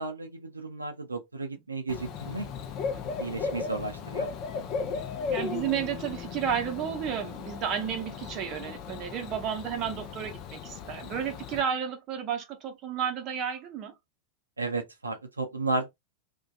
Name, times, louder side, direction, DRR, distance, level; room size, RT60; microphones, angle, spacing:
voice 1, 0.0-2.5 3.2-4.3 14.6-15.9, right 3 dB, 80° right, 0.4 m, -33 dB
Bird / Cricket, 1.9-11.6, left 5 dB, 40° left, 0.5 m, -36 dB
voice 2, 5.3-13.9, right 8 dB, 35° right, 0.6 m, -32 dB
2.5 x 2.2 x 2.4 m
figure-of-eight pair, 90°, 0 cm